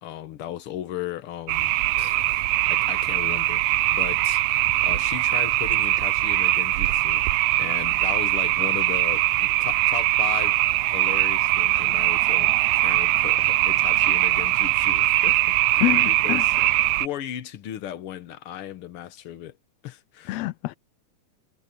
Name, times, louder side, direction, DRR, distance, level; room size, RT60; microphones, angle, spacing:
voice 1, 0.0-10.6 10.9-16.7 17.0-19.5 19.8-20.5, left 11 dB, 60° left, 1.7 m, -36 dB
sound 1, 1.5-17.1, right 16 dB, 80° right, 2.0 m, -21 dB
voice 2, 15.8-16.4 20.3-20.8, left 17 dB, 85° left, 1.5 m, -26 dB
omnidirectional pair, 3.5 m